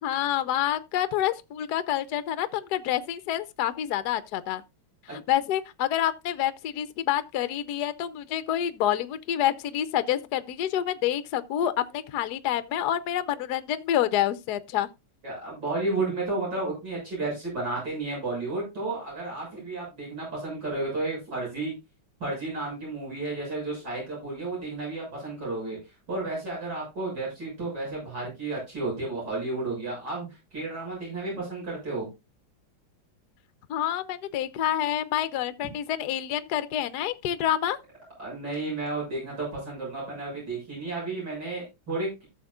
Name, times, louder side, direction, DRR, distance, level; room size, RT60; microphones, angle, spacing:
voice 1, 0.0-4.6 5.1-14.9 33.7-37.8, left 11 dB, 65° left, 1.1 m, -28 dB
voice 2, 15.2-21.7 22.2-25.8 26.1-32.1 38.2-42.2, right 2 dB, 60° right, 7.7 m, -32 dB
14.5 x 7.1 x 2.4 m
omnidirectional pair, 2.2 m